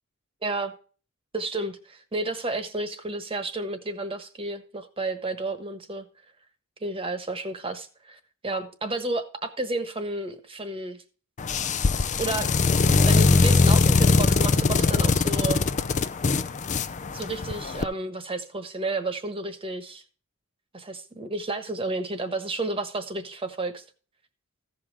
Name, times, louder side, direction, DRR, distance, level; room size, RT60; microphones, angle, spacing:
voice 1, 0.4-0.7 1.3-6.1 6.8-11.0 12.2-12.7 13.1-15.6 17.1-20.0 20.7-23.8, right 2 dB, 25° right, 9 dB, 1.3 m, -31 dB
sound 1, 11.4-17.8, left 3 dB, 35° left, 0.5 m, -21 dB
15.0 x 5.5 x 4.7 m, 0.38 s
head